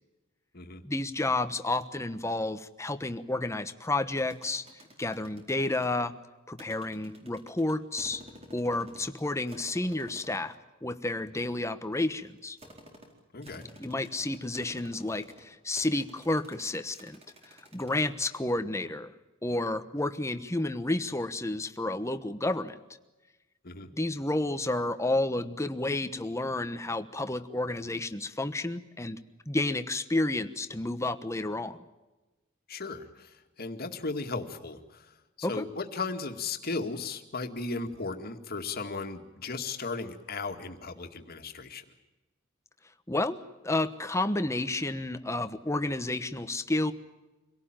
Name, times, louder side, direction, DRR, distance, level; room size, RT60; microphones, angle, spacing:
voice 1, 0.8-4.6 5.0-6.1 6.5-8.2 8.5-10.5 10.8-12.6 13.8-17.2 17.4-19.1 19.4-22.8 23.9-29.2 29.5-31.8 35.4-35.6 43.1-43.4 43.6-46.9, left 2 dB, 15° left, 10 dB, 1.2 m, -31 dB
sound 1, 4.2-5.9 6.6-9.2 9.5-10.5 11.2-17.9, equal, 30° right, 4.3 m, -52 dB
voice 2, 13.3-13.7 23.6-23.9 32.7-41.8, left 3 dB, 50° left, 6 dB, 2.1 m, -36 dB
26.0 x 17.5 x 9.0 m, 1.1 s
head